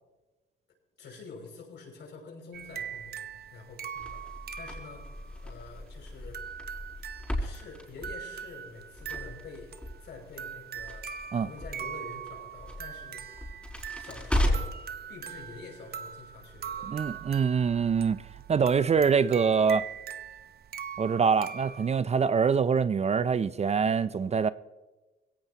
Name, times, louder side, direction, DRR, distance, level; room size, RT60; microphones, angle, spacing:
voice 1, 1.0-4.2 4.5-5.1 5.4-6.4 7.3-9.7 10.0-11.1 11.4-13.2 13.9-14.7 15.1-17.1, left 4 dB, 65° left, 6.3 m, -47 dB
sound 1, 2.5-22.0, right 8 dB, 50° right, 1.0 m, -42 dB
Crackle, 4.0-14.9, equal, 5° left, 5.4 m, -35 dB
voice 2, 16.8-18.2 18.5-19.9 21.0-24.5, right 6 dB, 35° right, 0.5 m, -25 dB
21.0 x 17.0 x 2.9 m
cardioid pair, 90°, 20 cm